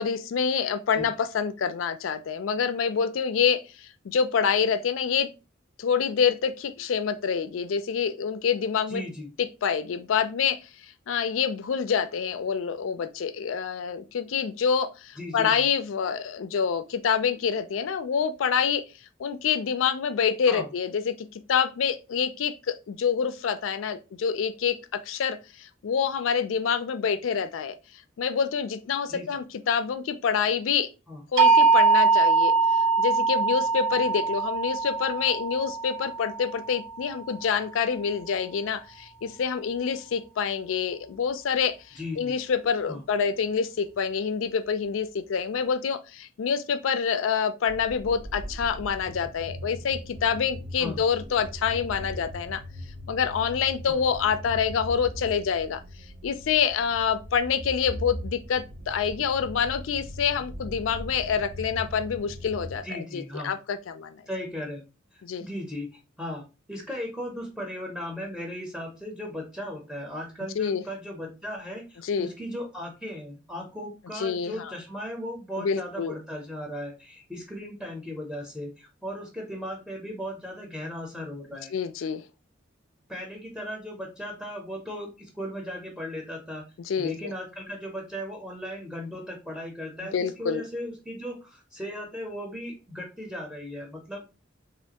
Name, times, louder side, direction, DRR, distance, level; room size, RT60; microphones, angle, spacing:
voice 1, 0.0-3.6 4.0-5.3 5.8-9.0 9.6-10.6 11.1-18.8 19.2-27.7 28.2-30.9 31.3-32.5 33.0-52.6 53.1-55.8 56.2-62.8 63.1-64.2 65.2-65.4 70.6-70.8 72.0-72.3 74.1-74.7 75.6-76.1 81.7-82.2 86.9-87.3 90.1-90.6, left 6 dB, 85° left, 0.4 m, -27 dB
voice 2, 8.9-9.3 15.2-15.7 20.5-20.7 29.1-29.4 31.1-31.2 42.0-42.3 42.9-43.0 50.8-51.0 53.9-54.0 62.8-63.5 64.3-64.8 65.1-82.1 83.1-86.6 87.0-94.3, equal, ahead, 0.6 m, -37 dB
sound 1, 31.4-37.4, right 4 dB, 85° right, 0.9 m, -22 dB
sound 2, 47.7-62.8, equal, 50° right, 0.6 m, -40 dB
3.2 x 2.5 x 2.8 m
head